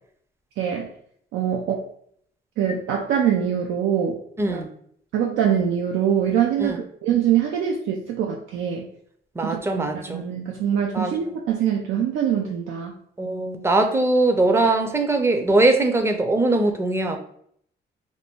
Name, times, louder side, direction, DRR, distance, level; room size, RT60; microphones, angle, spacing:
voice 1, 0.6-0.9 1.3-1.9 2.6-4.2 4.5-4.6 5.1-8.9 9.4-12.9, right 9 dB, 85° right, 1 dB, 0.4 m, -24 dB
voice 2, 4.4-4.7 6.6-6.8 9.4-10.3 10.9-11.1 13.2-17.2, right 2 dB, 15° right, 5 dB, 0.5 m, -21 dB
2.6 x 2.5 x 3.4 m, 0.66 s
cardioid pair, 90°, 20 cm